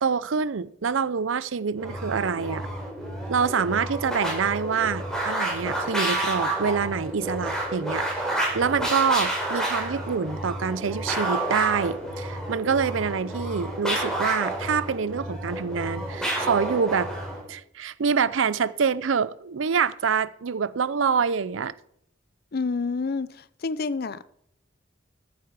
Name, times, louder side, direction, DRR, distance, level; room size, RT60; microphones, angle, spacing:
voice 1, 0.0-2.7 3.3-17.1 17.5-21.7, right 6 dB, 90° right, 0.5 m, -26 dB
sound 1, 1.8-17.4, right 1 dB, 5° left, 4.8 m, -30 dB
voice 2, 22.5-24.3, left 4 dB, 55° left, 0.6 m, -29 dB
14.0 x 8.2 x 4.8 m
head